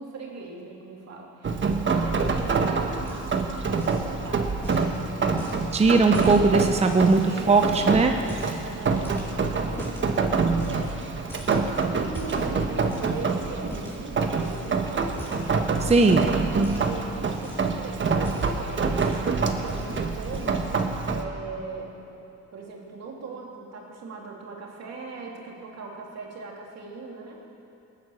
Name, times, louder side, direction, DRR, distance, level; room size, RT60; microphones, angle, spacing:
voice 1, 0.0-4.5 7.1-7.7 8.2-11.0 11.9-15.4 15.9-20.7 21.1-21.9 22.5-27.4, right 4 dB, 60° right, -1 dB, 2.9 m, -39 dB
Rain, 1.4-21.2, right 4 dB, 40° right, 1.3 m, -26 dB
sound 1, 3.1-3.5 3.7-4.1 4.6-7.2 7.6-8.6 9.0-10.1 10.6-11.0 11.3-13.2 13.7-14.0 14.4-14.7 15.0-16.2 16.6-16.9 17.3-17.8 18.1-19.3 19.7-19.9 20.2-20.7, equal, 10° left, 4.5 m, -40 dB
voice 2, 5.7-8.2 15.8-16.3, right 3 dB, 20° right, 5 dB, 0.8 m, -19 dB
18.5 x 9.2 x 7.1 m, 2.8 s
cardioid pair, 90°, 30 cm